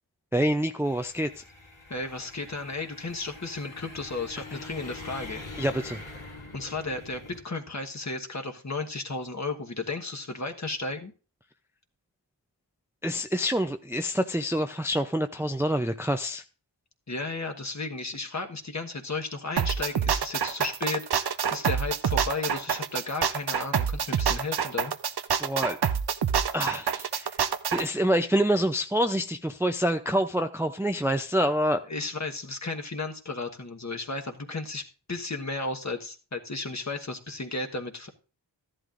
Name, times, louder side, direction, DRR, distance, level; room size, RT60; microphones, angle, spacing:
voice 1, 0.3-1.4 5.6-6.0 13.0-16.4 25.4-25.8 26.5-27.4 27.7-31.8, equal, 5° right, 7 dB, 0.5 m, -26 dB
sound 1, 0.8-7.4, left 2 dB, 75° left, 2.5 m, -44 dB
voice 2, 1.9-5.4 6.5-11.1 17.1-24.9 31.9-34.8 35.1-38.1, left 3 dB, 35° left, 4 dB, 1.3 m, -34 dB
sound 2, 19.6-27.8, right 7 dB, 55° right, 0.7 m, -26 dB
13.5 x 11.0 x 2.5 m, 0.37 s
wide cardioid pair, 65°, 46 cm